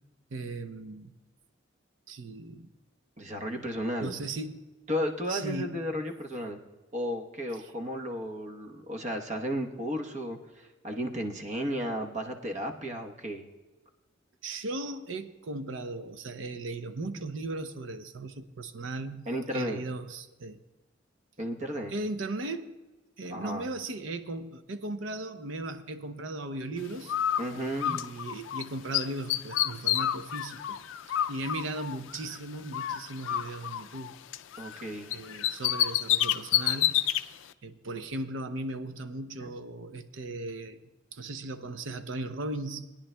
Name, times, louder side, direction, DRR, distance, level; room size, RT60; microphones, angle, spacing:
voice 1, 0.3-1.1 2.1-2.7 4.0-4.7 5.3-5.8 14.4-20.6 21.9-22.7 23.2-27.1 27.8-30.8 31.3-34.2 35.1-37.0 37.6-40.8 41.1-43.0, right 2 dB, 80° right, 10 dB, 0.6 m, -37 dB
voice 2, 3.2-4.2 4.9-6.6 6.9-13.4 19.3-19.8 21.4-21.9 23.3-23.6 27.4-28.0 34.6-35.1 39.4-39.5, equal, 40° right, 3 dB, 1.0 m, -34 dB
Bird, 27.1-28.6 28.9-32.4 32.7-34.8 35.1-37.2, left 11 dB, 85° left, 0.3 m, -29 dB
20.5 x 10.0 x 2.2 m, 1.2 s
head